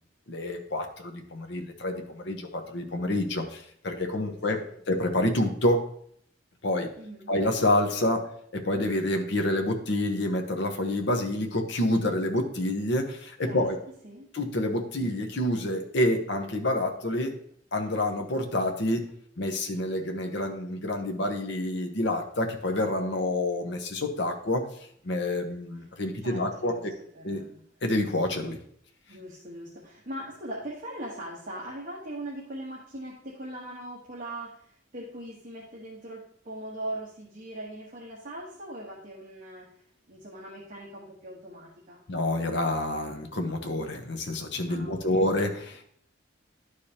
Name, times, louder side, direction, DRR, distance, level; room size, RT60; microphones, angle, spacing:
voice 1, 0.3-4.6 4.9-5.8 6.6-6.9 7.3-13.8 14.3-17.4 17.7-19.1 19.4-24.7 25.0-26.9 27.2-27.4 27.8-28.6 42.1-45.8, left 1 dB, 70° left, 4 dB, 1.0 m, -28 dB
voice 2, 7.0-7.3 13.4-13.7 14.0-14.3 26.2-27.6 29.1-39.7 40.1-42.0 44.7-45.2, right 1 dB, 45° right, -5 dB, 1.3 m, -40 dB
11.0 x 4.9 x 2.9 m, 0.65 s
head